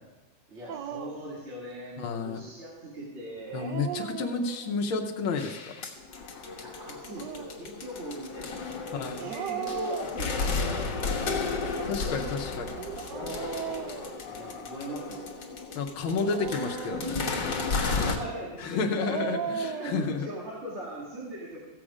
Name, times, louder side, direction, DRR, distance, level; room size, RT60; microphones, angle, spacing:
voice 1, 0.5-3.7 6.5-11.8 14.3-15.4 17.8-18.8 19.6-21.6, right 1 dB, 35° right, -6 dB, 2.4 m, -40 dB
Dog, 0.7-1.3 3.4-4.8 6.9-7.6 9.2-10.6 11.6-14.7 16.0-17.4 18.7-20.1, right 8 dB, 70° right, 1.2 m, -38 dB
voice 2, 2.0-2.4 3.5-5.7 8.9-9.3 11.8-12.7 15.7-17.3 18.6-20.3, left 4 dB, 90° left, 2 dB, 1.7 m, -31 dB
sound 1, 5.4-18.2, left 4 dB, 65° left, 2.0 m, -33 dB
15.5 x 7.6 x 4.9 m, 1.2 s
omnidirectional pair, 2.2 m